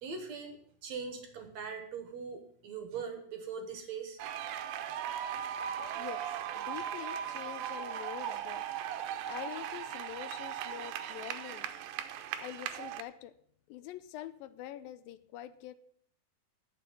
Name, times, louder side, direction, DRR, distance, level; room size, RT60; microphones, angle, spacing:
voice 1, 0.0-4.2, right 5 dB, 60° right, 2.2 m, -41 dB
sound 1, 4.2-13.0, right 10 dB, 85° right, 2.5 m, -38 dB
voice 2, 6.0-6.3 6.6-8.7 9.3-11.7 12.4-13.3 13.7-15.7, left 13 dB, 85° left, 2.4 m, -45 dB
9.6 x 7.0 x 8.7 m
omnidirectional pair, 4.0 m